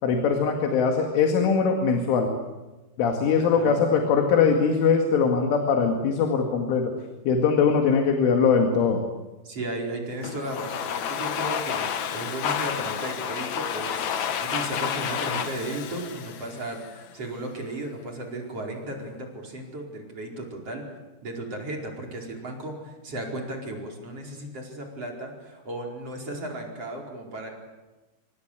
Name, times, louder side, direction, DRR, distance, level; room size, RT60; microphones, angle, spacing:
voice 1, 0.0-2.3 3.0-6.9 7.3-9.0, left 5 dB, 90° left, 3 dB, 4.7 m, -21 dB
voice 2, 3.4-3.9 9.4-21.0 21.2-27.5, right 1 dB, 30° right, 0 dB, 5.4 m, -35 dB
Domestic sounds home sounds, 10.2-17.1, left 8 dB, 70° left, 1.8 m, -30 dB
27.5 x 24.5 x 8.3 m, 1.1 s
omnidirectional pair, 5.4 m